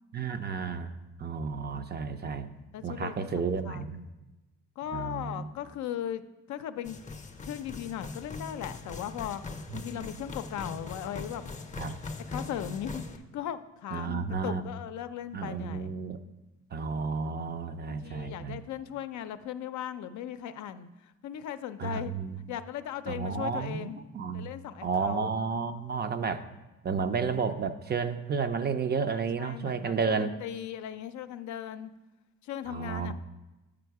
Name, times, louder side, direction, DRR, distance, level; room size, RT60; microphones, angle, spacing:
voice 1, 0.1-0.9 1.2-2.5 2.8-4.0 4.9-5.5 9.7-10.1 11.8-12.0 13.9-14.6 15.3-16.2 16.7-18.6 21.8-22.4 23.1-23.9 24.1-24.5 24.8-26.5 26.8-30.3 32.7-33.1, right 5 dB, 35° right, 10 dB, 0.5 m, -32 dB
voice 2, 2.7-4.0 4.8-6.2 6.5-7.0 7.4-9.4 9.7-11.4 12.3-13.0 13.3-15.9 17.9-22.1 22.5-24.0 24.3-25.3 29.1-31.9 32.4-33.1, left 10 dB, 70° left, 10 dB, 0.5 m, -38 dB
sound 1, 6.8-13.2, left 3 dB, 25° left, 0.6 m, -41 dB
7.7 x 4.9 x 4.6 m, 1.1 s
cardioid pair, 90°, 30 cm